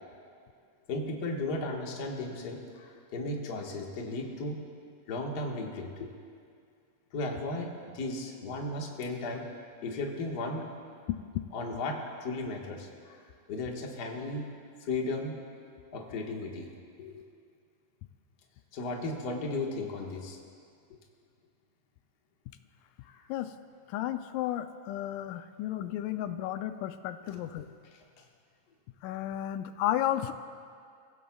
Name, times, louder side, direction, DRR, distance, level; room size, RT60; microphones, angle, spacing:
voice 1, 0.9-4.6 5.1-6.1 7.1-9.4 9.8-10.7 11.5-13.2 13.5-14.5 14.8-15.5 15.9-16.7 17.0-17.3 18.7-20.4 23.0-23.3 27.2-27.4 27.9-28.2, left 2 dB, 45° left, 0 dB, 1.4 m, -35 dB
voice 2, 23.9-27.7 29.0-30.3, left 12 dB, 85° left, 9 dB, 2.1 m, -33 dB
30.0 x 16.5 x 2.3 m, 2.3 s
omnidirectional pair, 3.7 m